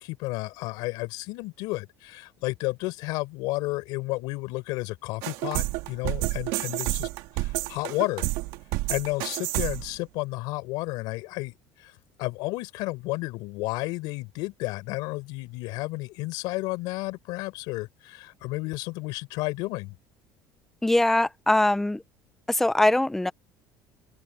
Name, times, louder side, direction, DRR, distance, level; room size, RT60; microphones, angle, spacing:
voice 1, 0.0-7.1 7.4-8.2 8.9-11.9 12.2-19.9, left 22 dB, 70° left, 4.5 m, -32 dB
sound 1, 5.2-10.0, right 19 dB, 80° right, 1.8 m, -30 dB
voice 2, 20.8-22.0 22.5-23.3, left 1 dB, 5° left, 0.5 m, -22 dB
open air
cardioid pair, 175°, 8 cm